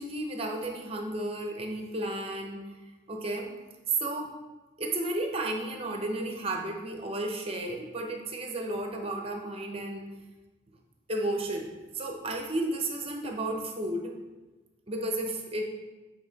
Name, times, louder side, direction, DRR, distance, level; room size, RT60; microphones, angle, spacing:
voice 1, 0.0-2.6 3.1-3.5 4.0-4.3 4.8-10.1 11.1-14.1 14.9-15.6, right 1 dB, 30° right, 3 dB, 0.7 m, -33 dB
7.0 x 3.5 x 4.0 m, 1.2 s
head